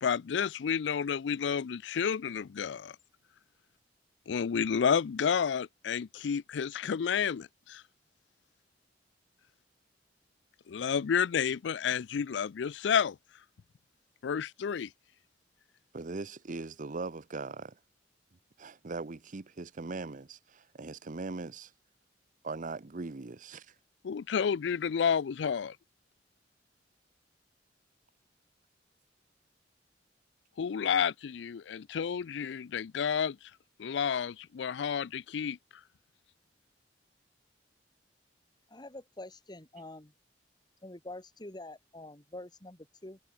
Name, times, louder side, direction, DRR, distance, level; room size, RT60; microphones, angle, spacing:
voice 1, 0.0-2.9 4.3-7.8 10.7-13.2 14.2-14.9 24.0-25.8 30.6-33.4 33.8-35.6, left 7 dB, 75° left, 0.4 m, -30 dB
voice 2, 15.9-17.8 18.6-21.7 22.4-23.7, right 3 dB, 45° right, 0.8 m, -40 dB
voice 3, 38.7-40.1 40.8-43.2, left 2 dB, 25° left, 2.5 m, -46 dB
head